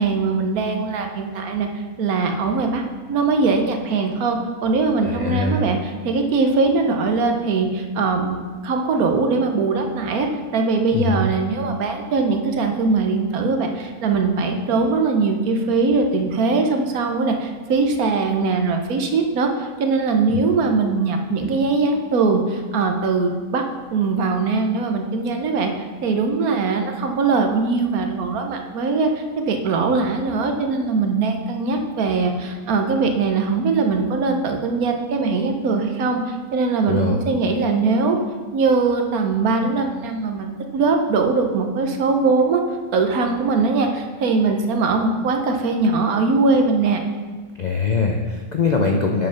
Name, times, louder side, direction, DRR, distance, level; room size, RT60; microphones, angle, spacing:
voice 1, 0.0-2.8 3.1-8.4 8.6-23.6 23.9-38.2 38.5-42.6 42.9-47.0, right 4 dB, 75° right, 4 dB, 1.3 m, -21 dB
voice 2, 5.0-5.6 10.9-11.2 20.3-20.4 36.9-37.2 47.6-49.3, left 4 dB, 60° left, 2 dB, 0.4 m, -22 dB
7.5 x 5.1 x 5.7 m, 1.4 s
omnidirectional pair, 1.6 m